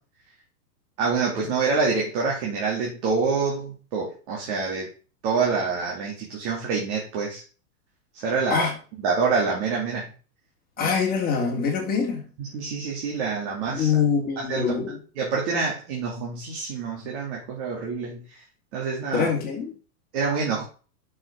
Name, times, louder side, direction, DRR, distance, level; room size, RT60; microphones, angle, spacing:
voice 1, 1.0-4.9 5.2-7.4 8.1-8.7 9.0-10.0 10.8-10.9 12.4-13.9 14.5-14.6 15.2-18.4 18.7-19.3 20.1-20.6, right 4 dB, 45° right, 2.7 m, -26 dB
voice 2, 10.8-12.3 13.7-15.0 19.1-19.7, left 6 dB, 20° left, 2.7 m, -24 dB
7.3 x 6.4 x 5.1 m
supercardioid pair, 155°, 46 cm